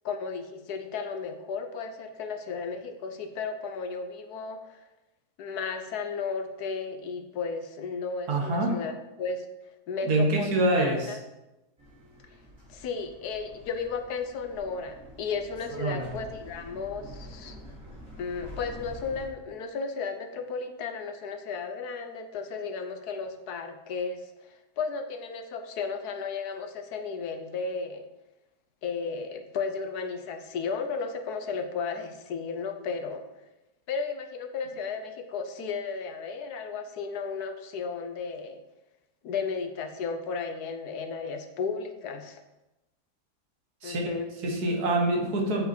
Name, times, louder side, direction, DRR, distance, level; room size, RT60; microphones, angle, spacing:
voice 1, 0.0-4.8 5.4-8.9 9.2-9.5 9.9-11.2 12.7-17.5 18.2-24.2 24.8-28.1 28.8-33.2 33.9-38.6 39.2-42.4 43.8-44.3, left 5 dB, 75° left, 6 dB, 1.3 m, -34 dB
voice 2, 8.3-8.8 10.1-11.2 15.7-16.1 43.8-44.1 44.4-45.7, right 2 dB, 70° right, 0 dB, 1.9 m, -26 dB
sound 1, 11.8-19.2, equal, 55° right, 3.6 m, -47 dB
7.7 x 5.7 x 4.4 m, 0.97 s
omnidirectional pair, 1.7 m